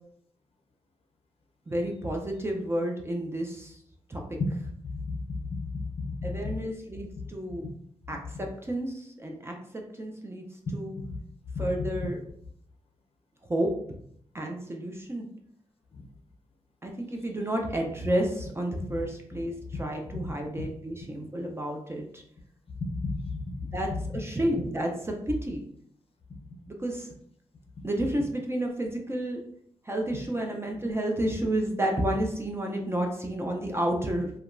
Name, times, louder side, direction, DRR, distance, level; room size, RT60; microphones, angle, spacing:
voice 1, 1.7-3.8 4.1-4.4 6.2-7.6 8.1-10.5 10.7-11.0 11.6-12.2 13.5-13.7 14.3-15.3 16.8-22.2 23.7-25.6 26.7-27.1 27.8-29.4 29.9-34.3, right 1 dB, 20° right, 1 dB, 0.4 m, -31 dB
voice 2, 4.4-6.5 7.6-7.7 11.0-11.1 11.5-11.9 15.9-16.1 18.9-19.0 19.7-20.3 22.8-23.6, left 3 dB, 50° left, 3 dB, 0.5 m, -33 dB
2.8 x 2.2 x 2.4 m, 0.67 s
cardioid pair, 70°, 12 cm